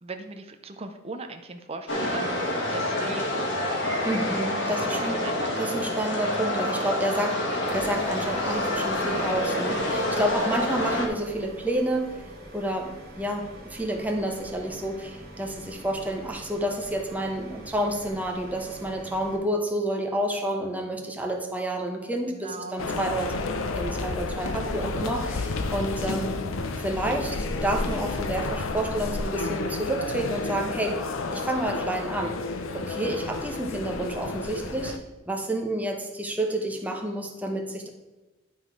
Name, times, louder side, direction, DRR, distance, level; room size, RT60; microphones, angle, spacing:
voice 1, 0.0-2.3 2.7-3.5 4.7-5.6 22.3-22.8, right 3 dB, 30° right, 6 dB, 0.6 m, -39 dB
sound 1, 1.9-11.1, left 1 dB, 60° left, 1.4 m, -27 dB
voice 2, 4.0-5.2 5.6-12.2 12.5-23.5 23.7-26.4 26.8-31.0 31.3-32.4 32.7-35.0 35.3-37.9, right 1 dB, 10° right, 2 dB, 0.9 m, -29 dB
sound 2, 7.7-19.4, right 1 dB, 50° right, 1.7 m, -45 dB
sound 3, 22.8-35.0, left 3 dB, 80° left, 0.6 m, -31 dB
11.5 x 3.9 x 4.7 m, 1.1 s
head